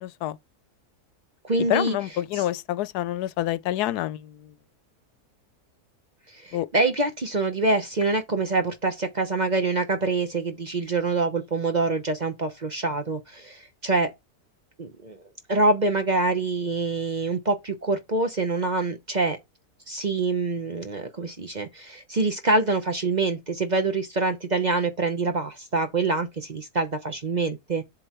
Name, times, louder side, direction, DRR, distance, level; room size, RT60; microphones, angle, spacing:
voice 1, 0.0-0.4 1.7-4.3 6.5-6.7, left 13 dB, 85° left, 1.1 m, -27 dB
voice 2, 1.4-2.0 2.3-2.4 6.3-14.1 14.8-15.2 15.5-19.4 19.9-27.8, right 3 dB, 35° right, 0.8 m, -25 dB
7.7 x 6.9 x 3.0 m
omnidirectional pair, 1.6 m